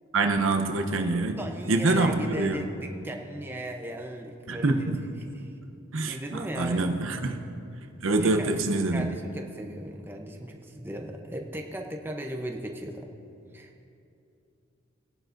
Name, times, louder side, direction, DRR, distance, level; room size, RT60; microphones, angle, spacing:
voice 1, 0.1-1.4 1.7-2.6 4.5-5.1 5.9-7.4 8.0-9.1, right 2 dB, 90° right, 5 dB, 0.8 m, -25 dB
voice 2, 1.4-4.9 5.4-5.5 6.0-7.2 8.2-8.6 8.9-13.1 13.5-13.9, right 1 dB, 10° right, 2 dB, 0.7 m, -37 dB
21.0 x 11.0 x 2.6 m, 2.7 s
head